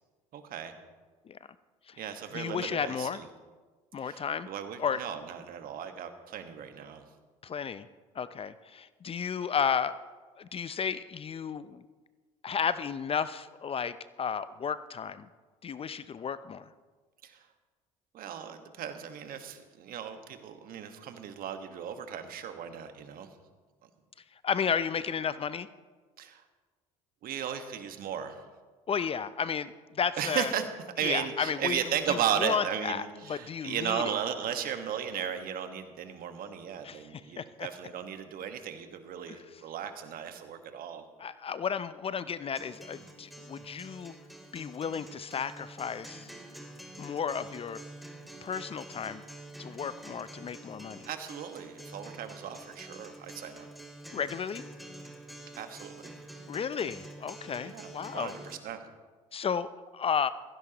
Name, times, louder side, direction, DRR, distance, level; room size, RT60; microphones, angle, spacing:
voice 1, 0.3-0.7 2.0-3.3 4.0-7.0 17.2-17.5 18.1-23.3 26.2-26.4 27.2-28.4 30.2-30.6 31.0-41.0 50.8-53.7 55.6-56.1 57.6-58.8, right 8 dB, 55° right, 7 dB, 1.5 m, -36 dB
voice 2, 2.3-3.2 3.9-4.5 4.8-5.0 7.4-7.9 8.1-10.0 10.4-11.8 12.4-15.3 15.6-16.7 24.4-25.7 28.9-30.5 31.0-31.8 32.1-34.0 36.8-37.7 39.3-39.4 41.2-44.1 44.5-46.3 47.0-47.8 48.4-49.2 49.6-51.1 54.1-54.6 56.5-58.3 59.3-60.3, left 7 dB, 35° left, 15 dB, 0.6 m, -33 dB
Acoustic guitar, 42.6-58.6, right 1 dB, ahead, 2.0 m, -47 dB
15.5 x 15.5 x 3.0 m, 1.4 s
hypercardioid pair, 65°, 18 cm